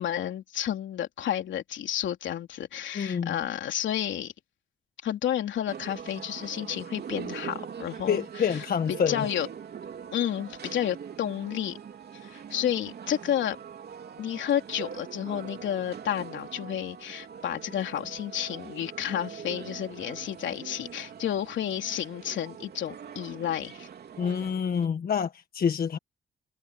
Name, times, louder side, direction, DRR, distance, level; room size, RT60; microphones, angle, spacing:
voice 1, 0.0-4.3 5.0-8.2 8.4-8.5 9.1-9.5 10.1-11.8 12.2-13.6 14.2-23.9, left 10 dB, 70° left, 3.4 m, -31 dB
voice 2, 2.9-3.4 8.1-9.2 24.2-26.0, left 7 dB, 50° left, 1.6 m, -27 dB
sound 1, 5.7-24.9, right 7 dB, 55° right, 3.2 m, -42 dB
cardioid pair, 90°, 20 cm